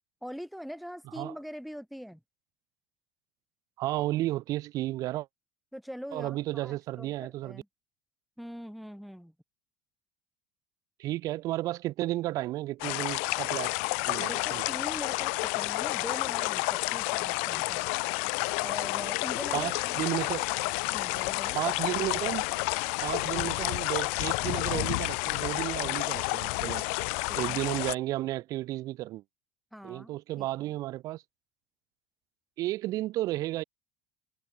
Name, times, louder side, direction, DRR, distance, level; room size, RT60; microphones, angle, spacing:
voice 1, 0.2-2.2 5.7-7.7 8.4-9.3 14.2-17.9 18.6-20.0 20.9-21.6 27.3-27.6 29.7-30.7, equal, ahead, 2.4 m, -43 dB
voice 2, 3.8-5.3 6.1-7.6 11.0-13.7 14.1-14.6 19.5-20.4 21.5-22.6 23.0-26.8 27.4-29.2 29.8-31.2 32.6-33.6, right 16 dB, 50° right, 0.7 m, -33 dB
sound 1, 12.8-27.9, left 37 dB, 65° left, 0.6 m, -30 dB
hypercardioid pair, 75°, 8 cm